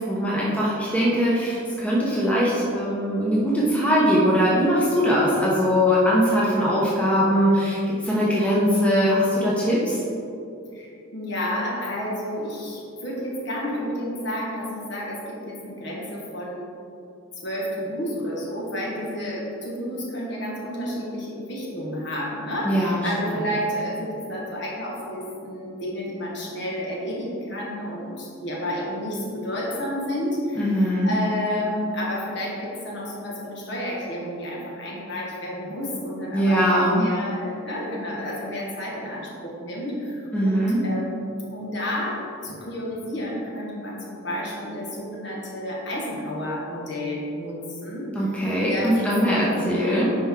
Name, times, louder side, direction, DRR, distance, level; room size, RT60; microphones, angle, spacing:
voice 1, 0.1-7.8 8.0-10.0 22.6-23.1 30.6-31.1 36.3-37.0 40.3-40.8 48.1-50.2, equal, 5° left, -6 dB, 0.9 m, -21 dB
voice 2, 10.7-16.7 17.4-49.6, equal, 55° left, -4 dB, 1.6 m, -31 dB
9.9 x 4.7 x 3.8 m, 2.7 s
head